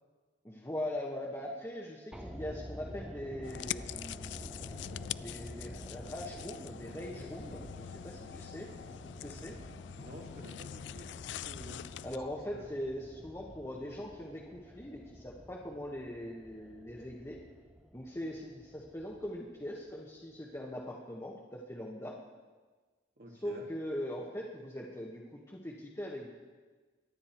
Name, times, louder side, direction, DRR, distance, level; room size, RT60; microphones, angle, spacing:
voice 1, 0.4-4.5 5.2-8.7 9.2-9.6 12.0-17.4 17.9-22.2 23.4-26.3, left 1 dB, 15° left, -4 dB, 1.3 m, -41 dB
sound 1, 2.1-20.3 20.6-20.7, equal, 5° right, 1.0 m, -50 dB
sound 2, 3.4-12.2, left 10 dB, 70° left, 0.3 m, -44 dB
voice 2, 9.9-11.1 11.4-12.2 12.5-12.7 23.2-23.7, right 1 dB, 55° right, 1 dB, 2.2 m, -50 dB
23.5 x 9.9 x 4.5 m, 1.4 s
head